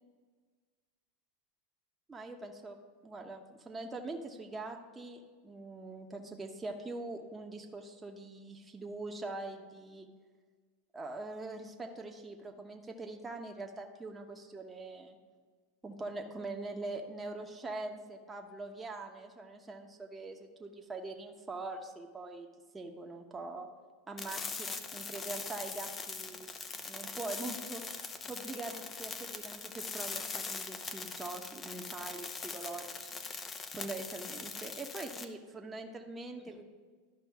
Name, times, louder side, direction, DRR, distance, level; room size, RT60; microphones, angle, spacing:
voice 1, 2.1-2.8 3.0-10.1 10.9-15.2 15.8-22.5 22.7-23.7 24.1-26.5 26.9-27.8 28.3-33.1 33.7-36.6, right 2 dB, 15° right, 2 dB, 1.0 m, -43 dB
sound 1, 24.2-35.2, left 4 dB, 25° left, 0.7 m, -42 dB
12.5 x 5.2 x 3.6 m, 1.5 s
hypercardioid pair, 110°, 0 cm